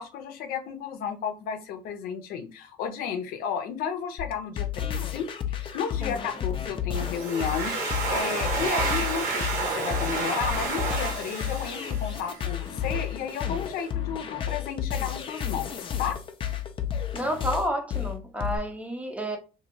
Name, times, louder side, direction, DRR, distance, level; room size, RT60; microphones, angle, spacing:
voice 1, 0.0-16.2, left 7 dB, 80° left, 0.6 m, -33 dB
sound 1, 4.2-18.6, left 9 dB, 35° left, 0.5 m, -32 dB
Domestic sounds home sounds, 6.9-12.6, right 4 dB, 75° right, 1.4 m, -30 dB
voice 2, 17.1-19.4, equal, 10° right, 0.6 m, -30 dB
2.9 x 2.6 x 2.6 m
cardioid pair, 130°, 15 cm